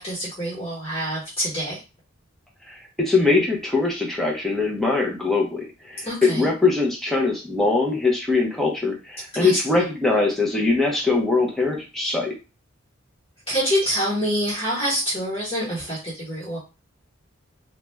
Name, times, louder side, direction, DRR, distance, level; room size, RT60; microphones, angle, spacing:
voice 1, 0.0-1.8 6.0-6.5 9.3-9.8 13.5-16.6, equal, 30° left, -8 dB, 1.2 m, -26 dB
voice 2, 2.7-12.3, left 3 dB, ahead, -2 dB, 0.6 m, -22 dB
2.4 x 2.2 x 3.2 m, 0.29 s
head